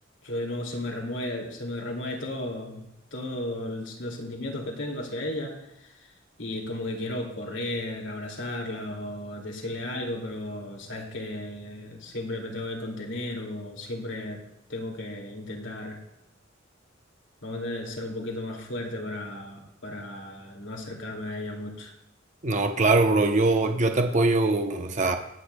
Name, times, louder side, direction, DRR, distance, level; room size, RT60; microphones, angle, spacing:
voice 1, 0.2-6.1 6.4-14.4 14.7-16.0 17.4-21.9, left 1 dB, 85° left, 0 dB, 2.4 m, -34 dB
voice 2, 22.4-25.2, right 2 dB, 40° right, 5 dB, 0.8 m, -22 dB
24.0 x 8.6 x 2.3 m, 0.82 s
head